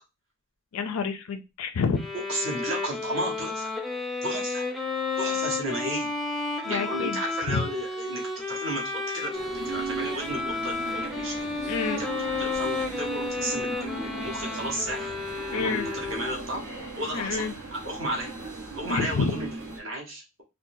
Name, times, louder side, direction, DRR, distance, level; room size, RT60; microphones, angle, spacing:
voice 1, 0.7-2.1 6.6-7.2 7.5-7.6 11.7-12.0 15.5-15.9 17.1-17.5 18.9-19.3, left 5 dB, 80° left, 7 dB, 0.4 m, -28 dB
Bowed string instrument, 2.0-16.5, left 3 dB, ahead, 0.3 m, -32 dB
voice 2, 2.3-3.7 4.2-4.6 5.2-6.1 6.7-8.2 8.5-9.3 9.6-11.5 12.0-12.1 12.4-15.1 15.5-16.6 17.0-18.3 18.8-20.4, right 1 dB, 60° right, -2 dB, 1.2 m, -33 dB
sound 1, 9.3-19.8, right 3 dB, 85° right, 1.2 m, -37 dB
3.9 x 2.2 x 2.6 m, 0.25 s
head